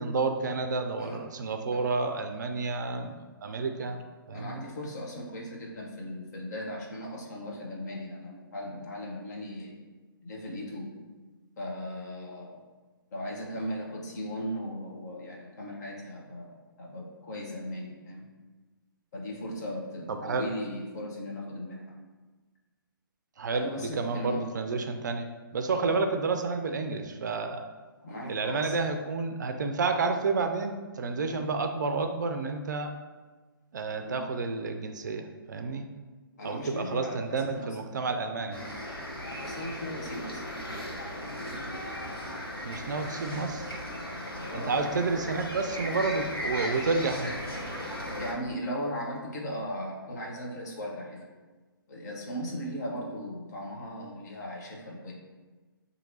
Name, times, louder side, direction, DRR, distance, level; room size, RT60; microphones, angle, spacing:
voice 1, 0.0-4.0 4.3-4.6 20.1-20.5 23.4-27.7 28.3-32.9 33.7-35.9 36.4-38.6 42.6-43.8 44.5-47.4, right 4 dB, 50° right, 6 dB, 0.4 m, -30 dB
voice 2, 4.3-9.8 10.2-10.9 11.6-12.6 13.1-18.3 19.1-22.0 23.5-24.5 25.8-26.1 28.0-28.8 31.1-31.4 34.0-34.2 36.4-37.8 39.4-40.4 44.5-44.7 48.2-51.3 51.9-55.1, equal, 45° left, -2 dB, 1.0 m, -37 dB
sound 1, 38.5-48.3, left 1 dB, 85° left, 1.0 m, -36 dB
5.7 x 2.7 x 2.7 m, 1.3 s
figure-of-eight pair, 130°, 12 cm